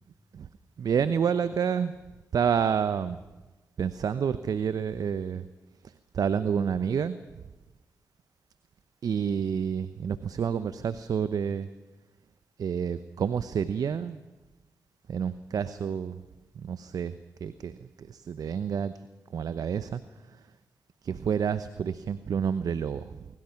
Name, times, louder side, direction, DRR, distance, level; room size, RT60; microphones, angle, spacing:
voice 1, 0.8-1.9 2.3-3.2 3.8-5.5 5.8-7.2 9.0-11.7 12.6-14.2 15.1-16.2 16.6-17.1 17.4-18.9 19.3-20.0 21.0-23.3, right 7 dB, 65° right, 14 dB, 0.8 m, -29 dB
24.5 x 24.0 x 5.9 m, 1.1 s
hypercardioid pair, 40°, 7 cm